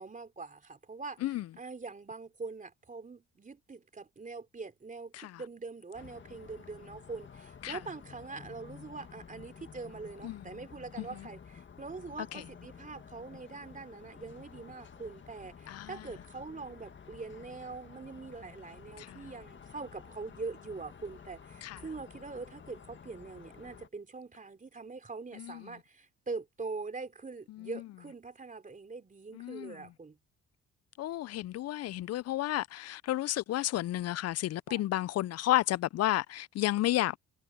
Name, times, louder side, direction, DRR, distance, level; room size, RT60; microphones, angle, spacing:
voice 1, 0.0-30.2 34.7-34.8, right 4 dB, 25° right, 3.3 m, -43 dB
sound 1, 5.9-23.9, left 6 dB, 40° left, 1.7 m, -52 dB
voice 2, 29.3-29.8 31.0-37.2, left 14 dB, 55° left, 0.4 m, -32 dB
cardioid pair, 90°, 30 cm